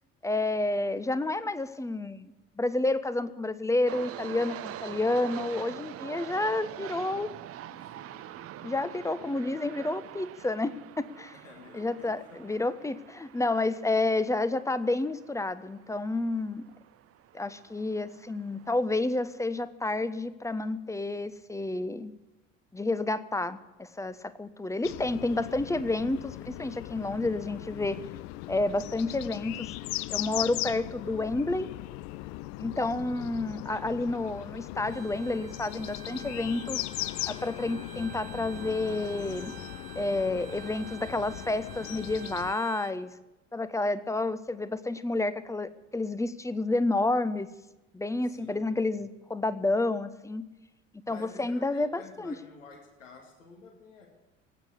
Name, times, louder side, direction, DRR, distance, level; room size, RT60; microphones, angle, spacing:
voice 1, 0.2-2.3 2.6-7.3 8.6-11.3 11.7-16.6 17.3-22.1 22.7-28.0 28.5-29.7 30.1-31.7 32.6-36.9 37.3-39.5 39.9-43.1 43.5-47.5 47.9-50.5 51.1-51.9 52.2-52.3, left 2 dB, 10° left, 14 dB, 0.8 m, -30 dB
sound 1, 3.9-18.8, right 12 dB, 35° right, 0.7 m, -45 dB
voice 2, 7.7-8.4 11.3-12.6 32.8-33.2 48.2-49.0 51.1-54.1, left 4 dB, 75° left, 2 dB, 2.1 m, -51 dB
sound 2, 24.8-42.5, left 18 dB, 50° left, 0.5 m, -39 dB
Bowed string instrument, 34.9-43.0, right 8 dB, 60° right, 1.5 m, -48 dB
18.0 x 8.9 x 8.1 m, 1.0 s
figure-of-eight pair, 60°, 38 cm